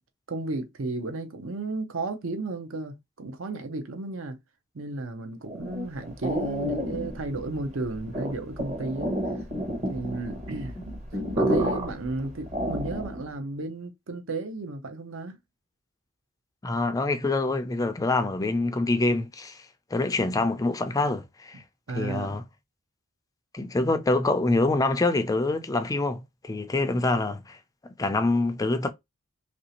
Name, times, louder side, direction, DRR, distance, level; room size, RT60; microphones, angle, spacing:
voice 1, 0.3-4.4 4.7-9.2 9.9-15.4 20.4-20.5 21.9-22.4, right 2 dB, 65° right, 0.7 m, -33 dB
sound 1, 5.5-13.3, equal, 30° right, 1.0 m, -30 dB
voice 2, 16.6-19.6 19.9-21.6 21.9-22.4 23.5-27.6 28.0-28.9, left 2 dB, 15° left, 0.4 m, -25 dB
3.2 x 2.6 x 2.8 m
head